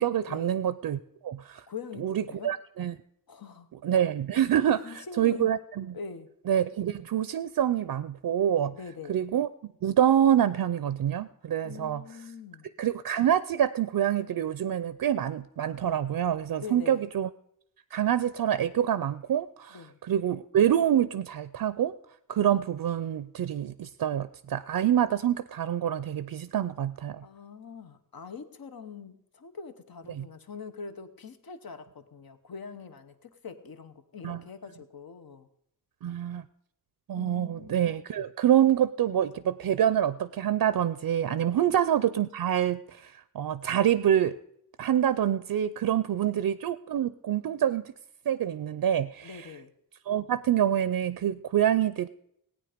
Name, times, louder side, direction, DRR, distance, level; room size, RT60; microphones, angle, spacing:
voice 1, 0.0-1.7 2.0-3.0 3.8-5.9 6.5-8.7 9.1-9.5 9.8-12.0 12.8-17.3 17.9-21.9 22.3-27.2 30.1-30.3 34.2-34.4 36.0-36.4 37.1-44.4 44.8-47.9 48.3-49.5 50.1-52.1, right 10 dB, 80° right, 15 dB, 0.5 m, -26 dB
voice 2, 1.7-2.5 3.3-3.7 4.7-5.5 5.9-6.3 8.7-9.2 11.6-12.7 16.5-17.1 19.7-20.0 27.2-35.5 37.2-37.8 41.6-41.7 46.3-46.4 49.2-49.7, left 5 dB, 80° left, 9 dB, 1.1 m, -43 dB
17.5 x 9.1 x 5.1 m, 0.73 s
wide cardioid pair, 120°, 35 cm